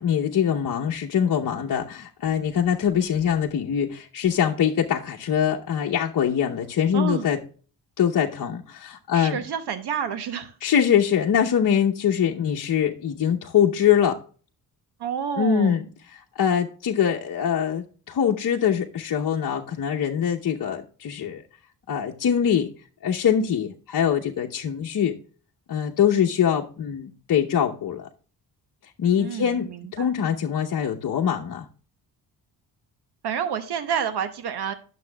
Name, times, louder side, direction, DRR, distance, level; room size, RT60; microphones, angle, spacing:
voice 1, 0.0-7.4 8.0-9.4 10.6-14.2 15.3-21.4 21.9-22.7 23.0-25.2 25.7-28.1 29.0-31.7, left 8 dB, 55° left, 0.9 m, -23 dB
voice 2, 9.1-10.5 15.0-15.8 29.2-30.1 33.2-34.7, right 8 dB, 80° right, 1.0 m, -29 dB
11.5 x 6.9 x 2.3 m
cardioid pair, 105°, 39 cm